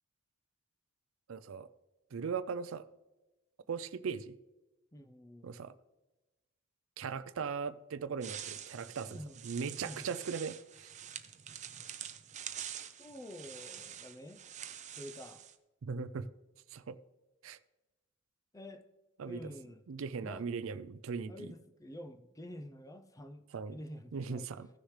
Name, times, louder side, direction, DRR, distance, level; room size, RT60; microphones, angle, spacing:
voice 1, 1.3-1.7 2.1-2.9 3.7-4.4 5.4-5.7 7.0-10.9 15.8-16.3 16.7-17.0 17.4-17.6 19.2-19.5 19.9-21.5 23.5-23.8 24.1-24.7, right 5 dB, 85° right, 0.4 m, -39 dB
voice 2, 4.9-5.5 9.1-9.3 9.8-10.1 13.0-14.4 15.0-15.4 18.5-18.8 19.3-19.8 20.2-20.5 21.3-23.4 23.7-24.5, left 1 dB, 15° left, 0.5 m, -48 dB
sound 1, 8.2-15.5, right 10 dB, 35° right, 0.5 m, -46 dB
15.5 x 6.4 x 3.2 m
head